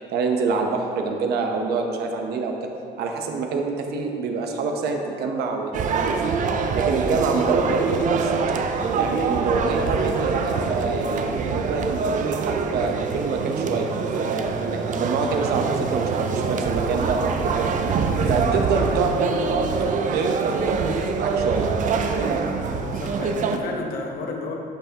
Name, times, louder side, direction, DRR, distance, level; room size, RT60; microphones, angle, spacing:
voice 1, 0.1-2.5 3.0-6.4 6.7-8.3 8.9-17.6 18.3-21.7, right 4 dB, 70° right, 3 dB, 0.9 m, -26 dB
sound 1, 5.7-23.6, right 5 dB, 50° right, 0.5 m, -25 dB
voice 2, 18.2-19.1 22.7-24.6, left 3 dB, 60° left, 2 dB, 1.0 m, -33 dB
11.0 x 5.6 x 2.9 m, 2.7 s
cardioid pair, 110°, 17 cm